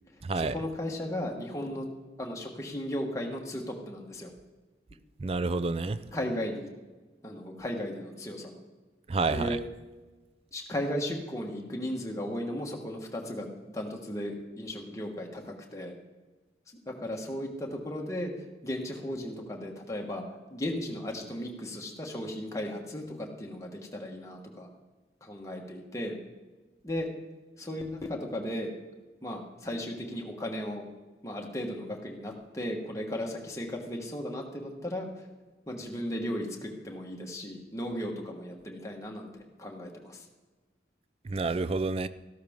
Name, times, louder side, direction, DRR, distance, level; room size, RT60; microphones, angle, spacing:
voice 1, 0.3-1.9 2.2-4.3 6.1-6.7 7.2-8.6 9.3-9.6 10.5-15.9 16.9-18.3 18.6-20.2 20.5-24.7 25.2-26.2 26.8-27.1 27.6-28.7 29.2-30.9 31.2-35.3 35.7-40.2, left 1 dB, 15° left, 0 dB, 1.3 m, -36 dB
voice 2, 5.2-6.0 9.1-9.6 41.3-42.1, right 3 dB, 30° right, 15 dB, 0.4 m, -28 dB
13.5 x 12.5 x 3.6 m, 1.2 s
head